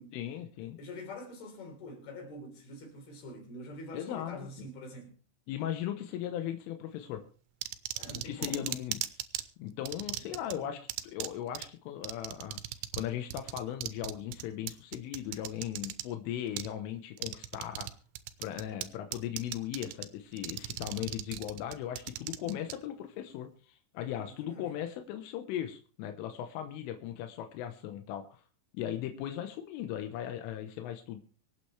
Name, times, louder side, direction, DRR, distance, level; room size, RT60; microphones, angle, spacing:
voice 1, 0.1-0.8 3.9-4.7 5.5-7.2 8.3-9.0 9.6-17.9 18.4-28.4 28.7-31.2, left 11 dB, 90° left, 3.7 m, -38 dB
voice 2, 0.8-5.1 8.0-8.8 10.3-10.8 24.3-24.7, left 1 dB, 55° left, 5.5 m, -45 dB
sound 1, 7.6-9.4 9.9-10.5 10.9-11.3 11.6-11.7 12.0-13.1 13.3-16.0 16.6-16.7 17.2-17.9 18.2-18.9 19.1-20.1 20.4-22.7, right 14 dB, 80° right, 2.6 m, -37 dB
24.5 x 8.8 x 3.3 m
omnidirectional pair, 5.5 m